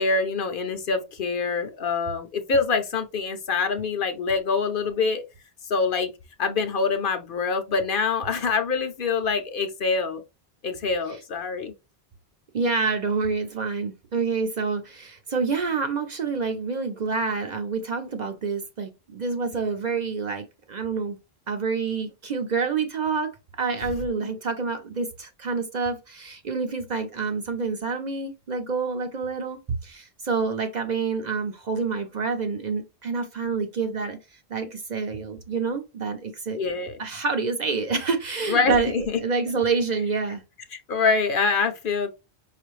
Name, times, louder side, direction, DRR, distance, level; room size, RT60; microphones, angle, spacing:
voice 1, 0.0-5.2 5.7-6.1 6.4-10.2 10.6-11.7 23.7-23.9 24.2-24.3 36.6-37.0 38.5-39.2 40.7-42.1, left 4 dB, 60° left, 0.7 m, -25 dB
voice 2, 12.5-21.2 21.5-34.2 34.5-36.6 37.0-40.4, right 4 dB, 50° right, 0.6 m, -27 dB
5.2 x 2.4 x 3.1 m
omnidirectional pair, 1.1 m